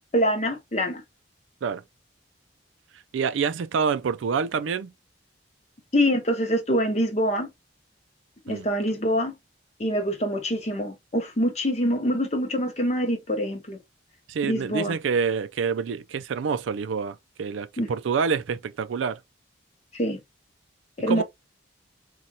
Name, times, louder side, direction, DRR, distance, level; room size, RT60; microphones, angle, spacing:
voice 1, 0.1-1.0 5.9-7.5 8.5-9.3 9.8-13.8 14.4-15.0 17.8-17.9 19.9-20.2 21.0-21.2, equal, 35° left, 0.8 m, -25 dB
voice 2, 3.1-4.9 8.5-8.7 14.3-19.2 21.1-21.2, right 6 dB, 85° right, 0.4 m, -27 dB
4.1 x 2.3 x 2.6 m
head